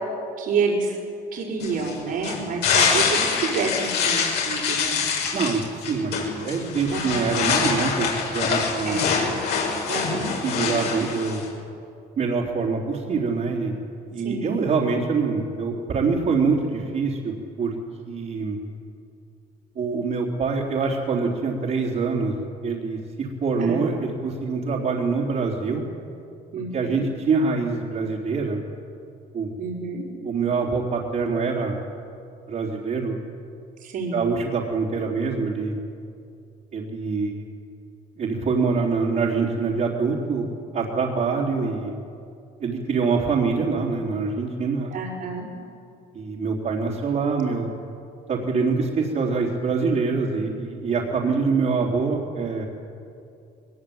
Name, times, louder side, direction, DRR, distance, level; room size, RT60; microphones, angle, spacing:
voice 1, 0.4-1.0 1.3-5.0 6.9-7.4 8.8-9.2 9.9-10.3 14.2-14.6 23.6-23.9 26.5-27.1 29.6-30.0 33.8-34.2 44.9-45.5, right 4 dB, 65° right, -7 dB, 5.0 m, -28 dB
sound 1, 1.6-11.5, left 5 dB, 80° left, 6.5 m, -25 dB
voice 2, 5.3-9.1 10.4-11.4 12.2-17.8 18.1-18.6 19.8-22.3 22.6-25.8 26.7-28.6 29.3-29.5 30.2-31.8 32.5-33.2 34.1-35.8 36.7-37.4 38.2-40.5 40.7-41.9 42.6-44.9 46.1-47.7 48.3-52.6, right 4 dB, 50° right, -4 dB, 3.7 m, -25 dB
21.5 x 21.0 x 8.8 m, 2.5 s
cardioid pair, 110°, 17 cm